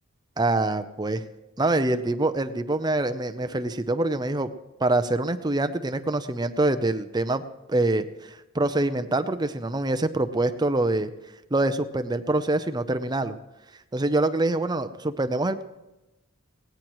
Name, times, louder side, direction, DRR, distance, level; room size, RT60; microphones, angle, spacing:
voice 1, 0.4-1.2 1.6-4.5 4.8-7.4 7.7-11.1 11.5-13.4 13.9-15.6, right 2 dB, 20° right, 10 dB, 0.6 m, -25 dB
20.5 x 18.0 x 3.1 m, 0.99 s
head